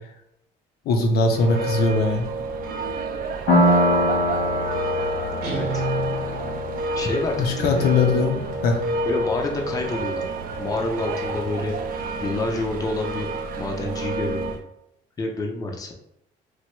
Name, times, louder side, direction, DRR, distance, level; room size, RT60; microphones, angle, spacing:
voice 1, 0.9-2.3 7.4-8.8, left 3 dB, 65° left, 3 dB, 0.6 m, -21 dB
sound 1, 1.3-14.6, right 2 dB, 60° right, 0.4 m, -29 dB
Piano, 3.5-10.9, left 1 dB, 85° left, 1.3 m, -26 dB
Guitar, 5.4-6.7, right 1 dB, 75° right, 0.8 m, -30 dB
voice 2, 5.5-5.8 7.0-7.9 9.0-10.3 10.6-11.7 12.2-13.3 13.6-14.5 15.2-15.9, left 2 dB, 20° left, 2 dB, 0.4 m, -28 dB
3.1 x 2.2 x 3.0 m, 0.80 s
cardioid pair, 110°, 17 cm